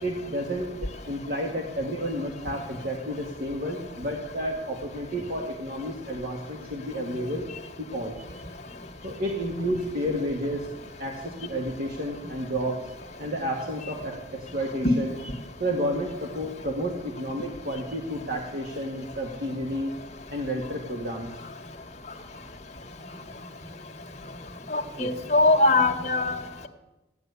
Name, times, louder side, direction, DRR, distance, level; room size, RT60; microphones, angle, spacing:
voice 1, 0.0-7.5 7.9-8.1 9.0-10.7 11.0-12.9 13.2-15.2 15.6-19.9 20.3-21.3 25.0-25.2, equal, 55° right, 0 dB, 1.9 m, -31 dB
voice 2, 24.7-26.4, left 2 dB, 40° left, 2 dB, 1.7 m, -21 dB
16.0 x 10.5 x 8.2 m, 1.0 s
head